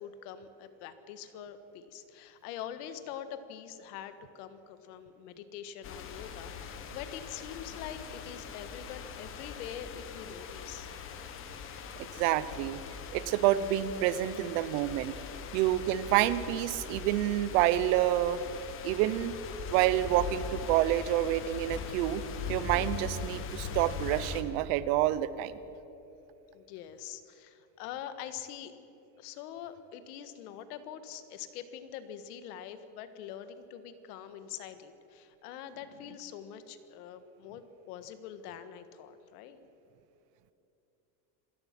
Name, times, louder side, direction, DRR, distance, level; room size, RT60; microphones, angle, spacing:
voice 1, 0.0-10.9 15.0-15.2 26.5-28.7 29.2-39.6, left 9 dB, 85° left, 11 dB, 1.7 m, -44 dB
sound 1, 5.8-24.4, left 5 dB, 30° left, 1.3 m, -41 dB
voice 2, 12.0-12.8 13.1-15.1 15.5-18.4 18.8-19.3 19.7-22.2 22.5-25.6, right 13 dB, 60° right, 16 dB, 0.9 m, -28 dB
26.5 x 17.0 x 6.1 m, 2.9 s
cardioid pair, 180°, 44 cm